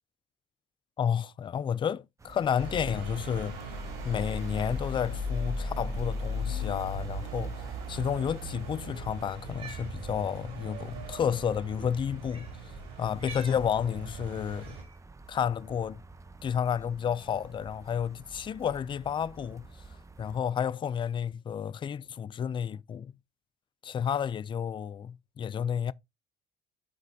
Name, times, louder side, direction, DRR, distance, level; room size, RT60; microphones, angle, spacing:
voice 1, 1.0-3.6 4.0-7.6 7.9-12.5 13.0-14.8 15.3-16.0 16.4-19.7 20.2-23.1 23.8-25.9, left 8 dB, 30° left, 0.3 m, -31 dB
sound 1, 2.2-20.4, right 3 dB, 20° right, 0.7 m, -49 dB
sound 2, 2.6-14.8, left 1 dB, 85° right, 3.8 m, -38 dB
Cat, 9.5-9.9 11.0-11.1 12.2-12.6 13.1-13.6 14.6-15.0, right 4 dB, 35° right, 2.3 m, -46 dB
12.5 x 4.2 x 2.7 m
cardioid pair, 110°, 17 cm